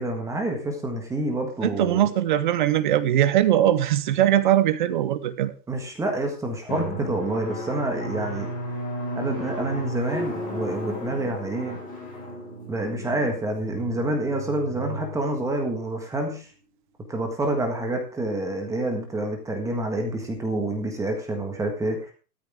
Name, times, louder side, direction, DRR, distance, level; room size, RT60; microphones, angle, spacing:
voice 1, 0.0-2.1 5.7-8.5 9.1-11.8 12.7-16.5 17.1-22.1, right 1 dB, 5° right, 3 dB, 1.5 m, -28 dB
voice 2, 1.6-5.5, right 12 dB, 30° right, 15 dB, 0.6 m, -21 dB
Drum, 6.7-16.0, right 1 dB, 15° left, 6.3 m, -34 dB
13.0 x 13.0 x 3.6 m, 0.35 s
hypercardioid pair, 165°, 48 cm